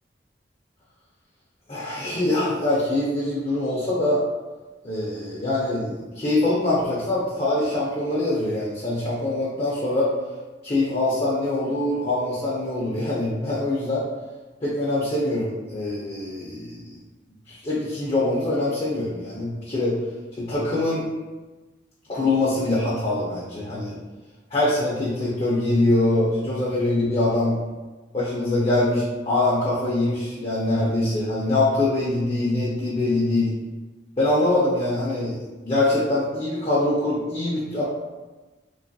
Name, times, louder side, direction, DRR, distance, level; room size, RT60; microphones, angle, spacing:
voice 1, 1.7-4.2 4.8-10.1 10.6-14.0 14.6-16.9 17.5-20.0 20.4-21.1 22.1-24.0 24.5-27.6 28.1-33.5 34.2-35.4 35.6-37.8, left 2 dB, 30° left, -7 dB, 0.4 m, -23 dB
2.9 x 2.3 x 2.5 m, 1.2 s
head